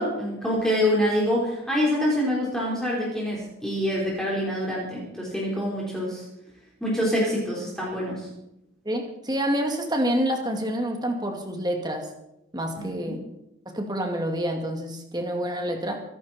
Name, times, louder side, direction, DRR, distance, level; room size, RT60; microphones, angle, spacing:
voice 1, 0.0-6.2 6.8-8.3 12.8-13.1, equal, 5° left, -6 dB, 4.4 m, -26 dB
voice 2, 8.9-12.1 12.5-13.2 13.7-16.0, equal, 20° right, 3 dB, 2.3 m, -27 dB
25.0 x 11.5 x 4.4 m, 0.84 s
head